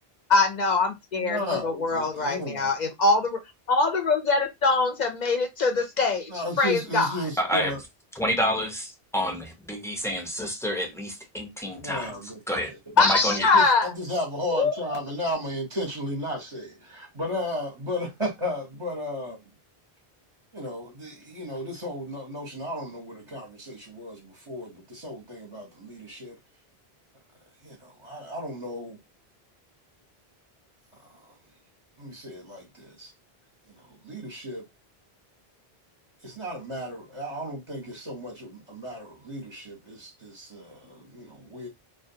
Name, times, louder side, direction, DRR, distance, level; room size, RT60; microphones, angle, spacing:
voice 1, 0.3-3.3 3.7-6.3 6.6-7.2 13.0-13.9 14.5-15.0, left 3 dB, 55° left, 0.6 m, -23 dB
voice 2, 1.2-2.7 6.3-7.8 11.6-12.8 13.3-19.4 20.5-26.4 27.6-29.0 30.9-31.4 32.0-33.1 33.7-34.6 36.2-41.7, left 1 dB, 35° right, 0.7 m, -34 dB
voice 3, 7.4-7.7 8.2-12.1 12.5-12.7 13.0-13.5, equal, 5° left, 0.3 m, -28 dB
2.3 x 2.1 x 2.6 m
omnidirectional pair, 1.0 m